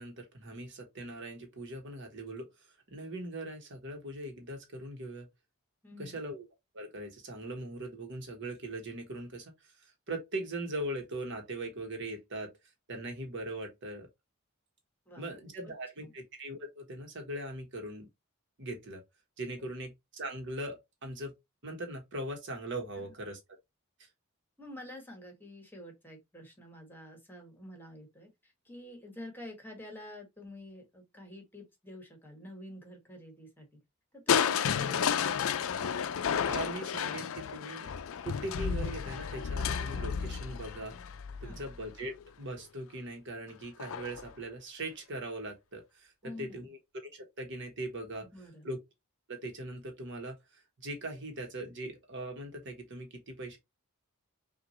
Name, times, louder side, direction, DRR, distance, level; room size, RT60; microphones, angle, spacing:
voice 1, 0.0-2.5 2.9-5.3 6.0-6.5 6.7-12.5 12.9-14.1 15.2-18.1 18.6-19.0 19.4-21.3 21.6-23.4 36.5-37.9 38.2-41.0 41.4-48.3 48.6-48.8 49.3-53.6, right 1 dB, 55° right, 1.3 m, -40 dB
voice 2, 5.8-6.2 15.1-15.3 16.0-16.1 19.6-19.7 23.0-23.1 24.6-33.8 34.1-35.4 41.4-41.7 46.2-46.7 48.2-48.7, left 1 dB, 10° left, 1.4 m, -48 dB
Crushing, 34.3-42.2 43.8-44.3 44.8-44.9, left 7 dB, 65° left, 0.4 m, -32 dB
5.8 x 2.5 x 3.0 m
head